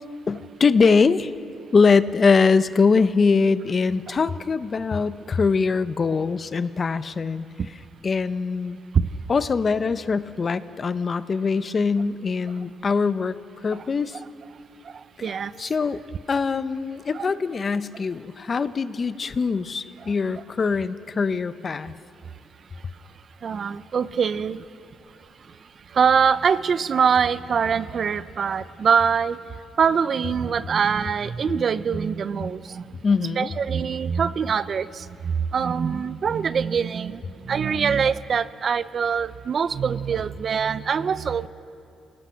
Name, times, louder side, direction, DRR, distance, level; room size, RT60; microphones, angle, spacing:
voice 1, 0.3-1.3 1.7-8.8 9.3-13.4 13.6-14.2 15.2-16.0 16.3-21.9 33.0-33.6, left 4 dB, 40° left, 13 dB, 0.7 m, -22 dB
voice 2, 14.8-15.5 17.1-17.3 20.0-20.1 23.4-24.6 25.9-29.4 29.8-32.8 33.4-41.5, right 6 dB, 50° right, 15 dB, 0.6 m, -23 dB
27.5 x 18.5 x 5.8 m, 2.5 s
cardioid pair, 90°, 0 cm